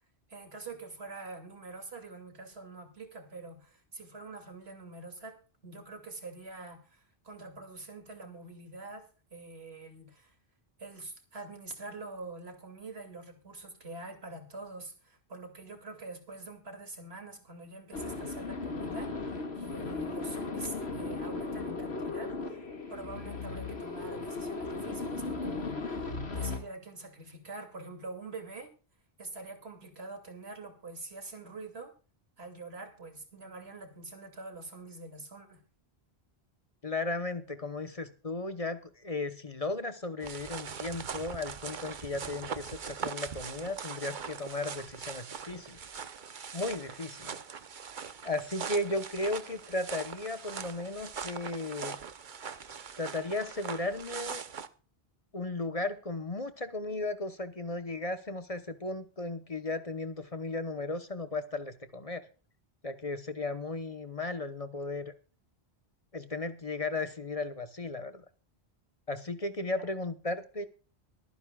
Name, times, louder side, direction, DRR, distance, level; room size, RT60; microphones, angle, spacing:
voice 1, 0.3-5.3 5.6-9.0 9.3-10.3 10.8-22.6 22.9-28.7 29.2-31.9 32.4-35.6, right 3 dB, 80° right, 4 dB, 2.9 m, -45 dB
sound 1, 17.9-26.6, left 3 dB, 90° left, 2.3 m, -36 dB
voice 2, 36.8-45.8 46.5-47.4 48.2-52.0 53.0-54.4 55.3-62.2 62.8-65.1 66.1-68.2 69.1-70.7, left 2 dB, 35° left, 10 dB, 1.1 m, -35 dB
sound 2, 40.2-54.7, right 6 dB, 55° right, 1.0 m, -41 dB
23.5 x 9.5 x 2.4 m, 0.36 s
omnidirectional pair, 1.0 m